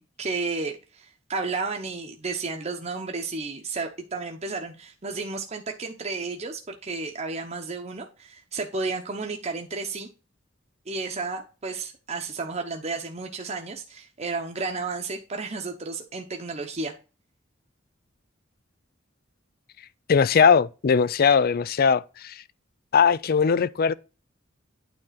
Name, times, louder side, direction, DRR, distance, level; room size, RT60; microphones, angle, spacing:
voice 1, 0.0-10.1 10.9-16.9, right 3 dB, 35° right, 0.9 m, -32 dB
voice 2, 20.1-22.4 22.9-23.9, left 6 dB, 50° left, 0.4 m, -20 dB
9.2 x 3.7 x 5.7 m
head